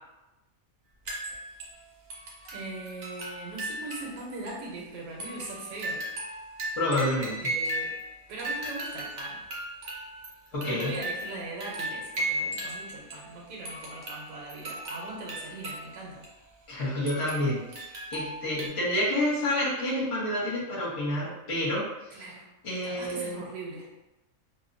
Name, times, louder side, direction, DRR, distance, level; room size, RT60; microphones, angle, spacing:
sound 1, 1.1-1.8 2.1-4.2 4.5-4.6 5.2-8.1 8.4-13.3 13.6-15.9 16.2-16.3 17.1-18.7, right 1 dB, 55° right, 0.6 m, -36 dB
voice 1, 2.5-6.0 7.4-7.9 8.3-9.4 10.6-16.2 22.1-22.5 22.8-23.9, right 2 dB, 75° right, -3 dB, 1.0 m, -40 dB
voice 2, 6.8-7.5 10.5-10.9 16.7-17.6 18.1-21.8 22.6-23.4, left 1 dB, 45° left, -9 dB, 0.4 m, -28 dB
2.8 x 2.0 x 2.5 m, 1.0 s
omnidirectional pair, 1.5 m